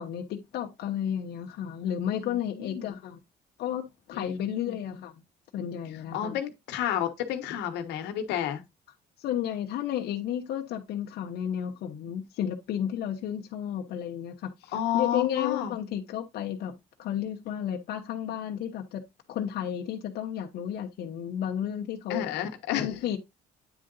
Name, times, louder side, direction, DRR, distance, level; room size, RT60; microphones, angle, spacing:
voice 1, 0.0-3.2 3.6-5.2 5.5-6.4 9.2-22.3 22.7-23.2, left 10 dB, 70° left, 1.0 m, -32 dB
voice 2, 2.2-2.9 4.1-4.8 6.1-8.6 14.7-15.7 22.1-23.0, left 10 dB, 85° left, 1.2 m, -31 dB
9.2 x 3.7 x 4.0 m
cardioid pair, 110°, 17 cm